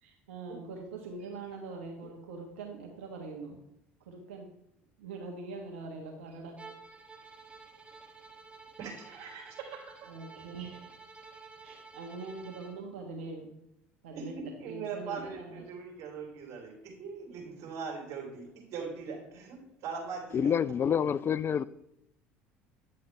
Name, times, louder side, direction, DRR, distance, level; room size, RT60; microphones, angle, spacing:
voice 1, 0.0-3.6 4.0-4.5 5.0-6.7 10.0-11.0 11.3-13.5 14.0-15.7, right 3 dB, 80° right, 2 dB, 1.2 m, -43 dB
Bowed string instrument, 6.6-12.8, right 4 dB, 20° right, 1.3 m, -52 dB
voice 2, 8.8-10.0 14.1-20.5, right 5 dB, 55° right, -1 dB, 3.5 m, -41 dB
voice 3, 20.3-21.7, left 8 dB, 35° left, 17 dB, 0.4 m, -27 dB
9.8 x 7.8 x 3.3 m, 0.77 s
hypercardioid pair, 70°, 6 cm